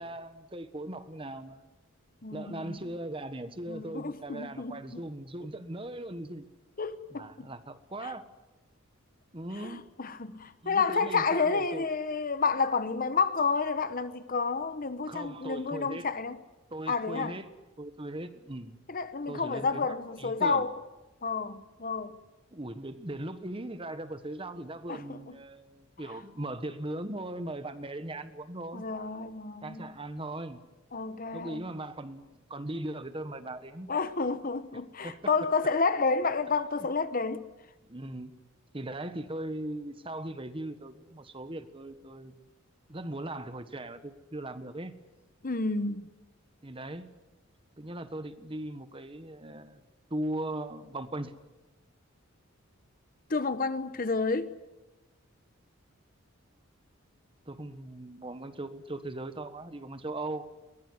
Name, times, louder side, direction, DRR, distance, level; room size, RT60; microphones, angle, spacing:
voice 1, 0.0-1.6 2.3-6.5 7.1-8.2 9.3-9.8 10.6-11.9 15.1-16.0 16.7-17.4 17.8-18.8 19.3-20.7 22.5-28.9 29.6-30.6 31.3-33.9 35.0-35.2 37.8-38.3 38.7-42.4 42.9-45.0 46.6-47.1 47.8-49.8 50.1-51.3 57.4-60.5, right 1 dB, 25° right, 1.4 m, -39 dB
voice 2, 2.2-2.8 3.7-5.0 6.8-7.5 8.0-8.1 9.5-16.4 16.9-17.4 18.9-20.8 21.2-22.2 24.9-25.4 28.7-29.9 30.9-31.6 33.9-37.5 45.4-46.2 53.3-54.5, left 4 dB, 40° left, 1.0 m, -30 dB
23.0 x 19.5 x 9.7 m
head